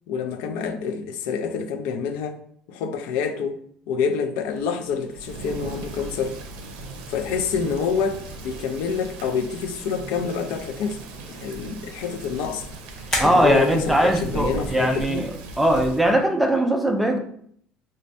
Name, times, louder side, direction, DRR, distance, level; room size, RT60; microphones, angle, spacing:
voice 1, 0.1-2.4 2.7-3.6 3.9-6.4 7.1-11.0 11.3-12.7 13.2-15.3, left 6 dB, 75° left, 0.4 m, -27 dB
sound 1, 4.5-16.1, left 1 dB, 10° left, 0.8 m, -40 dB
Thunder / Rain, 5.1-16.2, right 2 dB, 70° right, 0.6 m, -37 dB
voice 2, 13.2-15.3 15.6-17.2, right 1 dB, 5° right, 0.3 m, -20 dB
4.3 x 2.2 x 2.6 m
cardioid pair, 175°, 2 cm